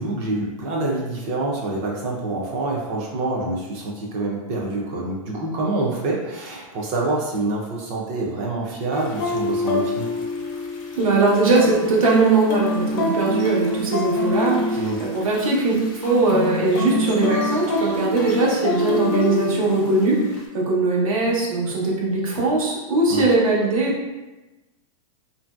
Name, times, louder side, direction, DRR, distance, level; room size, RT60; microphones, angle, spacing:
voice 1, 0.0-10.1 14.8-15.0 23.1-23.3, right 2 dB, 25° right, -2 dB, 0.4 m, -26 dB
sound 1, 8.9-20.5, left 1 dB, 30° left, 0.4 m, -26 dB
voice 2, 11.0-15.7 16.0-20.2 20.5-24.1, right 3 dB, 85° right, -3 dB, 0.9 m, -20 dB
2.9 x 2.5 x 2.3 m, 1.1 s
supercardioid pair, 165°, 18 cm